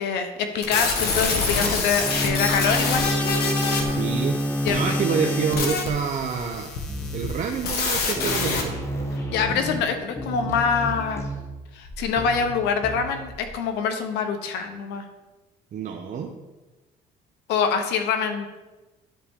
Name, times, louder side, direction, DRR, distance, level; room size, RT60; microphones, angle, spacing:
voice 1, 0.0-3.1 4.6-5.0 9.3-11.2 11.7-15.0 17.5-18.5, left 6 dB, 85° left, 7 dB, 0.9 m, -25 dB
sound 1, 0.6-8.6, left 4 dB, 70° left, 1.4 m, -27 dB
Bowed string instrument, 2.0-6.2, left 1 dB, ahead, 0.4 m, -27 dB
voice 2, 3.9-4.4 4.7-6.7 7.1-8.7 15.7-16.3, right 6 dB, 45° right, 2 dB, 0.7 m, -27 dB
sound 2, 6.9-7.5 7.8-7.9 8.2-13.5, right 1 dB, 15° left, 1.3 m, -33 dB
10.5 x 4.2 x 3.7 m, 1.1 s
cardioid pair, 110°, 17 cm